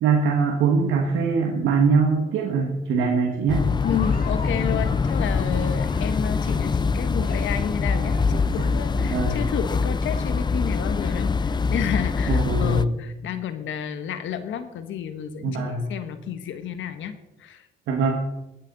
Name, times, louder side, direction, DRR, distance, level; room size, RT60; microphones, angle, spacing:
voice 1, 0.0-3.7 9.1-9.4 12.3-12.9 15.4-15.9 17.9-18.2, right 4 dB, 80° right, 1 dB, 1.5 m, -22 dB
sound 1, 3.5-12.8, left 4 dB, 20° left, 0.4 m, -24 dB
voice 2, 3.8-17.1 17.4-17.7, left 8 dB, 75° left, 10 dB, 1.3 m, -31 dB
Laughter, 3.8-12.1, left 3 dB, 45° left, 2.4 m, -42 dB
19.0 x 8.4 x 4.0 m, 0.96 s
cardioid pair, 90°, 20 cm